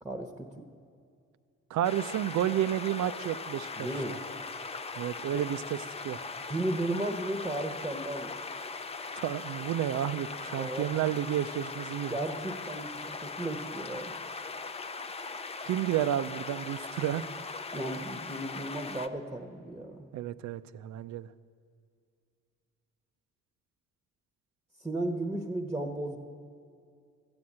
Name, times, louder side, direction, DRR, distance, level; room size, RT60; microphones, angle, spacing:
voice 1, 0.0-0.6 3.7-4.2 5.3-5.4 6.5-8.4 10.6-11.0 12.1-14.1 17.7-20.1 24.8-26.2, right 1 dB, 5° right, 3 dB, 1.0 m, -35 dB
voice 2, 1.7-4.2 5.0-5.8 6.0-6.2 9.2-12.2 15.6-17.2 20.1-21.3, right 11 dB, 70° right, 15 dB, 0.5 m, -31 dB
sound 1, 1.8-19.1, left 4 dB, 20° left, 0.5 m, -40 dB
13.0 x 7.9 x 8.6 m, 2.3 s
cardioid pair, 90°, 30 cm